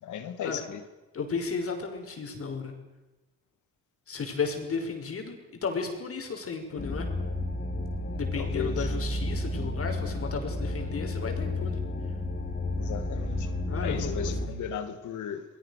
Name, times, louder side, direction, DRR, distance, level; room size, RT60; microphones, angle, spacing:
voice 1, 0.0-0.8 8.3-8.9 12.7-13.5 13.8-15.4, left 8 dB, 75° left, 10 dB, 2.6 m, -36 dB
voice 2, 1.1-2.7 4.1-7.1 8.1-11.8 13.7-14.5, left 5 dB, 50° left, 4 dB, 6.0 m, -34 dB
sound 1, 6.8-14.5, left 2 dB, 30° left, 3.4 m, -31 dB
29.5 x 20.5 x 6.7 m, 1.1 s
cardioid pair, 90°, 30 cm